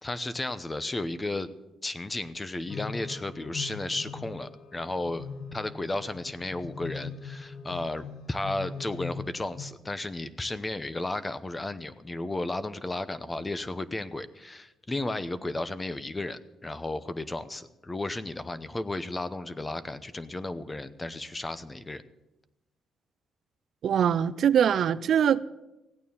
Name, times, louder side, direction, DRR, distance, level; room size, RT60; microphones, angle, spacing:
voice 1, 0.0-1.5 1.8-22.0, left 2 dB, 20° left, 14 dB, 0.8 m, -34 dB
sound 1, 2.6-9.7, left 5 dB, 65° left, 1.2 m, -41 dB
voice 2, 23.8-25.4, right 8 dB, 65° right, 16 dB, 0.4 m, -23 dB
16.0 x 9.2 x 7.1 m, 0.97 s
cardioid pair, 90°, 0 cm